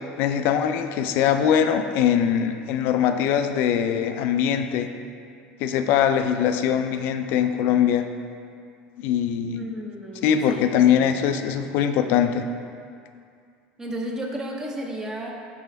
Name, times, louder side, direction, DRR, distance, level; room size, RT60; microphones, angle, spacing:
voice 1, 0.2-4.9 5.6-8.0 9.0-9.6 10.2-12.4, left 9 dB, 65° left, 7 dB, 0.4 m, -22 dB
voice 2, 9.6-11.2 13.8-15.3, right 1 dB, 15° right, 0 dB, 0.8 m, -33 dB
4.9 x 4.8 x 3.9 m, 2.3 s
supercardioid pair, 110°, 4 cm